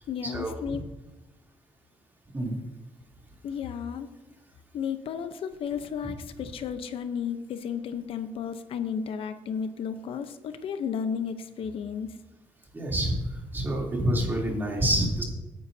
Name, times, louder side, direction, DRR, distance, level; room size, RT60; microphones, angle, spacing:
voice 1, 0.1-0.8 3.4-4.1 4.7-12.2, left 7 dB, 70° left, 10 dB, 0.9 m, -33 dB
voice 2, 12.7-13.1 13.5-15.2, right 1 dB, 20° right, -2 dB, 3.3 m, -27 dB
17.5 x 9.5 x 2.8 m, 1.1 s
cardioid pair, 115°, 10 cm